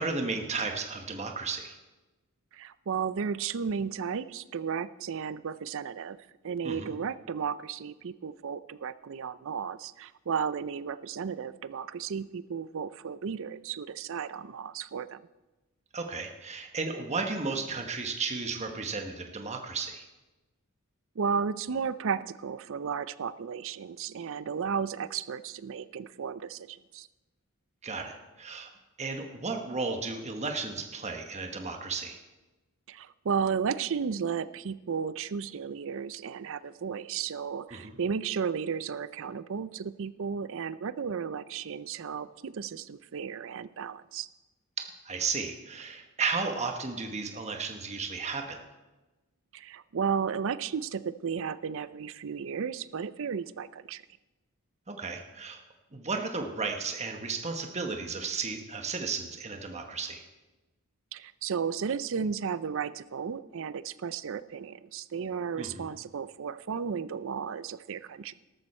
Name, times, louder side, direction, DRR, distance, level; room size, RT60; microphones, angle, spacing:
voice 1, 0.0-1.8 6.6-6.9 15.9-20.1 27.8-28.7 29.0-32.2 37.7-38.0 44.8-48.6 54.9-55.6 55.9-60.2 65.6-65.9, right 4 dB, 30° right, 4 dB, 1.2 m, -34 dB
voice 2, 2.5-6.2 6.4-15.2 21.2-27.1 32.9-44.3 49.5-54.0 61.1-68.3, right 6 dB, 65° right, 16 dB, 0.5 m, -34 dB
13.5 x 13.5 x 4.3 m, 1.1 s
head